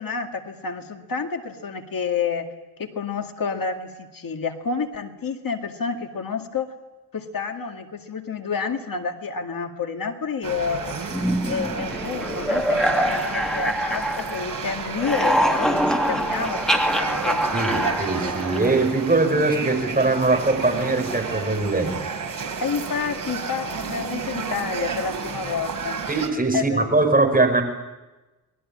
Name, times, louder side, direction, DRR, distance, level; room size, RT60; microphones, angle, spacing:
voice 1, 0.0-2.5 2.8-6.7 7.1-11.0 11.4-17.4 22.6-26.0 26.5-26.9, left 5 dB, 55° left, 4 dB, 2.2 m, -29 dB
sound 1, 10.4-26.3, right 5 dB, 55° right, 4.8 m, -32 dB
sound 2, 11.1-14.6 14.9-18.9, equal, ahead, 2.6 m, -24 dB
voice 2, 17.5-22.0 26.1-27.6, right 3 dB, 20° right, 4 dB, 5.6 m, -21 dB
29.5 x 21.5 x 8.7 m, 1.1 s
wide cardioid pair, 125°, 39 cm